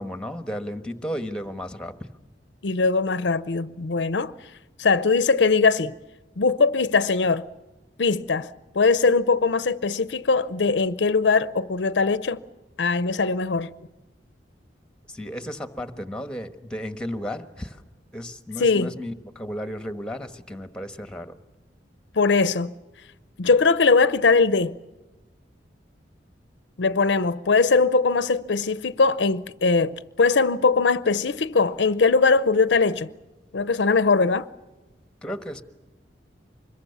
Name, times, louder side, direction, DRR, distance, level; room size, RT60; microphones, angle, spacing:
voice 1, 0.0-2.1 15.1-17.8 18.1-21.4 35.2-35.6, equal, 5° left, 1.3 m, -34 dB
voice 2, 2.6-4.3 4.8-5.9 6.4-7.4 8.0-8.5 8.7-12.4 12.8-13.7 18.6-18.9 22.2-22.7 23.4-24.7 26.8-33.1 33.5-34.5, left 4 dB, 75° left, 0.7 m, -21 dB
25.5 x 22.0 x 7.0 m
head